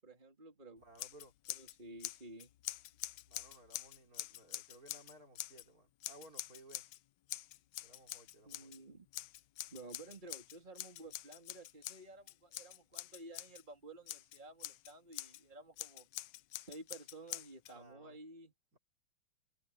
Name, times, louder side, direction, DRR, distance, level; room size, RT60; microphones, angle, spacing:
voice 1, 0.0-0.8 1.6-2.5 8.5-9.1 9.7-16.1 16.6-18.5, right 2 dB, 20° right, 3.4 m, -53 dB
voice 2, 0.8-1.3 3.2-6.8 7.8-8.7 17.7-18.2 18.7-18.8, right 1 dB, 40° right, 4.5 m, -59 dB
Scissors, 0.9-1.7 2.0-5.6 6.0-7.0 7.3-8.8 9.1-13.6 14.1-15.4 15.8-17.7, left 15 dB, 80° left, 1.0 m, -46 dB
omnidirectional pair, 2.4 m